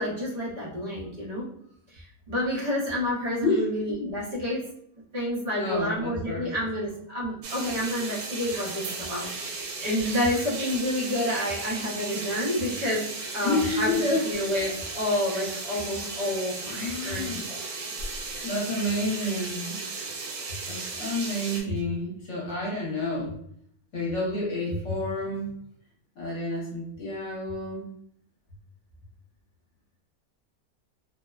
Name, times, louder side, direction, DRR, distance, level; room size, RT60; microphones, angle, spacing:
voice 1, 0.0-1.4 1.9-4.6 5.1-17.7, left 1 dB, 45° right, -6 dB, 0.5 m, -29 dB
voice 2, 3.4-4.1 5.6-6.4 13.4-14.2 16.7-17.4 18.4-19.8 20.7-23.3 23.9-25.5 26.2-27.9, left 2 dB, 55° left, -4 dB, 1.1 m, -29 dB
sound 1, 7.4-21.6, right 3 dB, 85° right, 1.1 m, -35 dB
2.6 x 2.1 x 2.3 m, 0.68 s
omnidirectional pair, 1.6 m